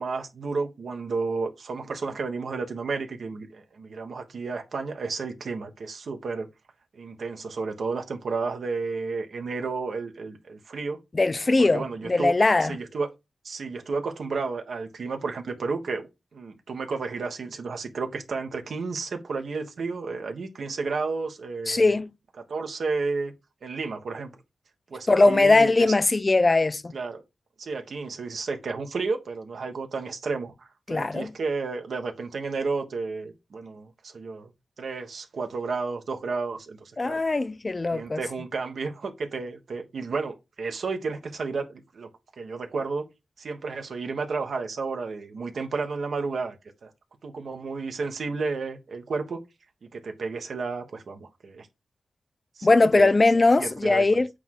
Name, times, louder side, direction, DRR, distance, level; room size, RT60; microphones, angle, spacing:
voice 1, 0.0-6.5 6.9-11.0 11.6-12.3 12.7-13.1 13.4-16.1 16.3-22.0 22.5-23.3 23.6-24.3 24.9-25.9 26.9-27.2 27.6-34.5 34.8-37.2 37.9-42.1 42.4-43.0 43.4-46.6 46.8-46.9 47.2-49.4 49.9-51.7 52.6-53.1 53.6-54.2, right 4 dB, 75° right, 1.3 m, -32 dB
voice 2, 11.1-12.8 21.7-22.1 25.1-26.9 30.9-31.3 37.0-38.2 52.6-54.3, left 3 dB, 30° left, 0.5 m, -20 dB
8.2 x 3.2 x 3.8 m
wide cardioid pair, 110°, 0 cm